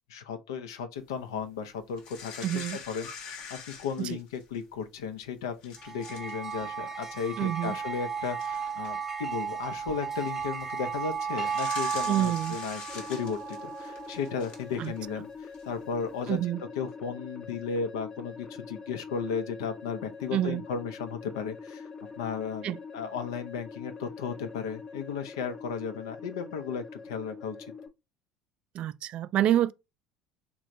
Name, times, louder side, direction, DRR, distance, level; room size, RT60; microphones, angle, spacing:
voice 1, 0.1-16.4 16.8-21.9 22.2-27.6, left 6 dB, 80° left, 0.6 m, -35 dB
sound 1, 2.0-4.6 5.2-5.3 5.6-6.3 6.6-6.8 7.9-8.0 8.4-8.9 9.6-9.9 11.4-15.1 15.5-15.6, left 6 dB, 65° left, 1.0 m, -44 dB
voice 2, 2.4-2.8 4.0-4.1 7.4-7.8 12.1-12.6 14.8-14.9 16.3-16.6 20.3-20.6 22.6-22.8 28.7-29.7, right 12 dB, 55° right, 0.3 m, -27 dB
sound 2, 5.8-14.4, right 6 dB, 20° right, 0.7 m, -34 dB
sound 3, 12.9-27.9, left 5 dB, 35° left, 0.7 m, -44 dB
3.3 x 2.3 x 4.0 m
hypercardioid pair, 70°, 2 cm